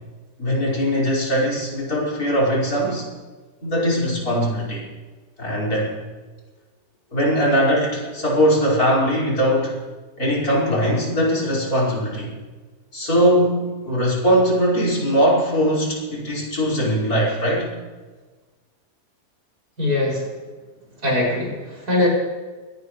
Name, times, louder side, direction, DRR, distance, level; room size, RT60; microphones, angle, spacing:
voice 1, 0.4-3.0 3.6-4.9 5.4-6.0 7.1-9.7 10.2-12.3 12.9-17.7, equal, 80° left, -3 dB, 6.0 m, -20 dB
voice 2, 19.8-20.3 21.0-22.1, left 2 dB, 85° right, -4 dB, 7.0 m, -21 dB
23.0 x 18.5 x 3.3 m, 1.3 s
omnidirectional pair, 1.6 m